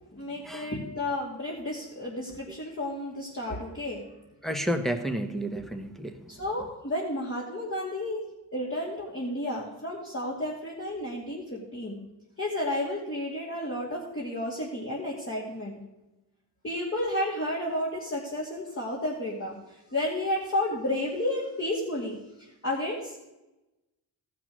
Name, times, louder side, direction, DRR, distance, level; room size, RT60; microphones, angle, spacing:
voice 1, 0.1-4.0 6.3-8.2 8.5-12.0 12.4-15.8 16.6-23.2, left 1 dB, 30° left, -5 dB, 2.6 m, -32 dB
voice 2, 4.4-6.4, equal, ahead, 7 dB, 1.3 m, -31 dB
14.5 x 6.0 x 6.3 m, 0.99 s
cardioid pair, 60°, 44 cm